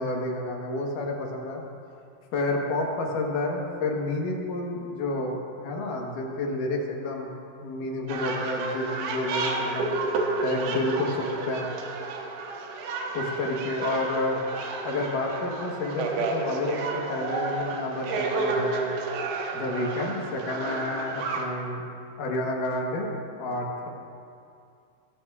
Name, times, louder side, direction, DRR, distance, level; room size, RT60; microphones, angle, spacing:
voice 1, 0.0-1.6 2.3-7.3 7.6-10.0 10.4-11.7 13.1-14.4 14.8-18.9 19.5-21.8 22.2-23.1 23.4-23.9, left 2 dB, 65° left, 0 dB, 2.7 m, -30 dB
sound 1, 8.1-21.4, right 3 dB, 90° right, 3.0 m, -31 dB
18.0 x 13.5 x 2.4 m, 2.5 s
omnidirectional pair, 4.5 m